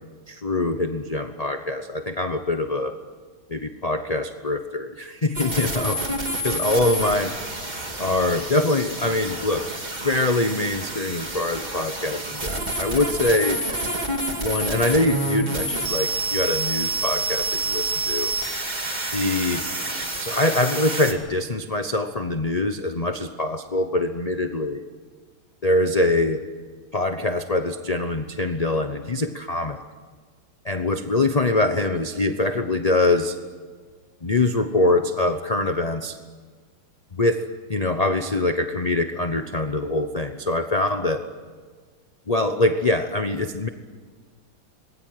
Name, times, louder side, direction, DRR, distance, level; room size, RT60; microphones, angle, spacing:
voice 1, 0.3-3.0 3.5-6.1 6.4-7.4 8.0-9.7 10.0-13.6 14.4-18.3 19.1-19.6 20.2-24.8 25.6-26.4 26.9-29.8 30.6-33.4 34.2-36.2 37.1-41.2 42.3-43.7, left 2 dB, 40° left, 7 dB, 0.5 m, -24 dB
sound 1, 5.3-21.1, right 2 dB, 20° right, 2.4 m, -28 dB
26.0 x 21.0 x 9.5 m, 1.5 s
omnidirectional pair, 2.3 m